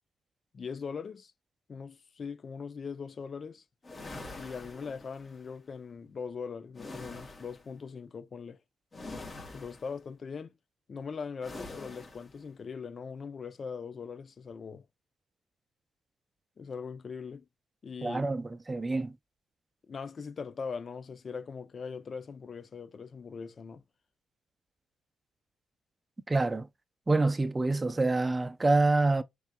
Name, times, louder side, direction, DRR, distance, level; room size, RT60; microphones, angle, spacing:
voice 1, 0.5-1.3 1.7-3.6 4.3-8.6 9.5-10.5 10.9-14.9 16.6-17.4 17.8-18.2 19.9-23.8, left 5 dB, 45° left, 0.7 m, -41 dB
sound 1, 3.8-5.4 6.7-7.7 8.9-10.0 11.4-12.4, left 2 dB, 25° left, 2.4 m, -45 dB
voice 2, 18.0-19.1 26.3-26.7 27.1-29.2, right 2 dB, 20° right, 0.6 m, -26 dB
5.6 x 3.9 x 2.3 m
cardioid pair, 90°, 0 cm